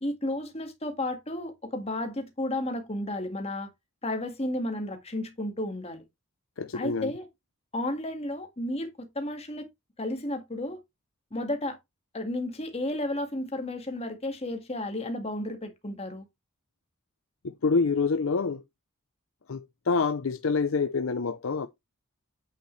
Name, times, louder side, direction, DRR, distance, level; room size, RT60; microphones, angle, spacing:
voice 1, 0.0-3.7 4.0-6.0 6.7-7.3 7.7-9.7 10.0-10.8 11.3-11.8 12.1-16.2, left 1 dB, 30° left, 1.8 m, -32 dB
voice 2, 6.6-7.1 17.4-18.6 19.5-21.7, left 4 dB, 65° left, 0.6 m, -27 dB
8.5 x 6.5 x 3.2 m
head